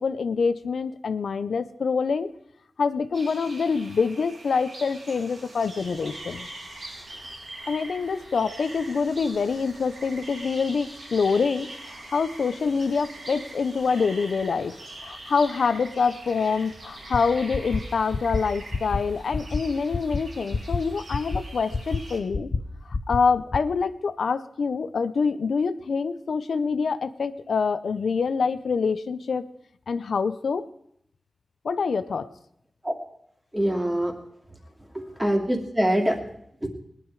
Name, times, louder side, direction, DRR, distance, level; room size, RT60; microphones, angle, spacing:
voice 1, 0.0-2.3 2.8-6.5 7.7-14.7 15.0-22.5 22.9-29.4 29.9-30.6 31.6-32.3, left 5 dB, 90° left, 11 dB, 0.7 m, -26 dB
sound 1, 3.1-22.2, right 1 dB, 75° right, 4.2 m, -43 dB
sound 2, 17.1-17.2 17.5-17.8 18.1-18.4 18.7-19.0 19.3-19.6 19.9-20.2 20.5-20.8 21.1-21.4 21.7-22.0 22.3-22.6 22.9-23.2 23.5-23.6, left 4 dB, 60° left, 0.9 m, -26 dB
voice 2, 33.5-34.1 34.9-36.2 36.6-36.7, equal, 15° right, 1 dB, 2.7 m, -24 dB
20.0 x 10.5 x 4.8 m, 0.72 s
wide cardioid pair, 75°, 0 cm